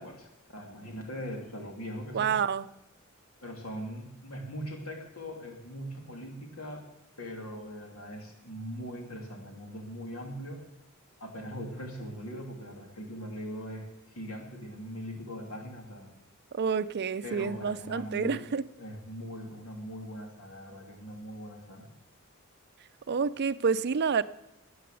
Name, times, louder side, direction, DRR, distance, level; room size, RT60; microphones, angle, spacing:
voice 1, 0.0-2.3 3.4-6.8 7.2-10.6 11.2-16.1 17.2-18.4 18.8-21.9, equal, 75° left, 1 dB, 3.3 m, -41 dB
voice 2, 2.1-2.7 16.5-18.6 23.1-24.2, right 6 dB, 50° right, 14 dB, 0.5 m, -28 dB
13.5 x 9.5 x 7.7 m, 0.89 s
head